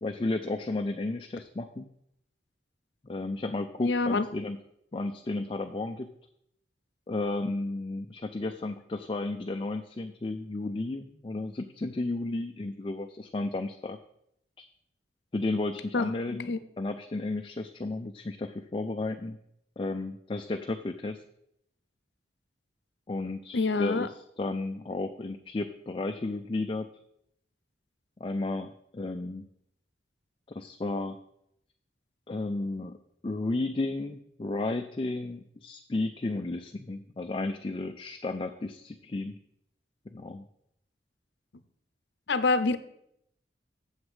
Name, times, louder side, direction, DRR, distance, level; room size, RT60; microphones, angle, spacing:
voice 1, 0.0-1.9 3.0-4.6 4.9-6.1 7.1-14.0 14.6-14.7 15.3-19.4 19.8-21.2 23.1-24.1 24.4-26.9 28.2-29.5 30.5-31.2 32.3-33.0 33.2-39.4 40.1-40.4, left 2 dB, 30° left, 5 dB, 0.4 m, -33 dB
voice 2, 3.8-4.3 15.9-16.6 23.5-24.1 42.3-42.8, left 3 dB, 75° left, 13 dB, 0.6 m, -26 dB
7.9 x 7.2 x 4.8 m, 0.75 s
head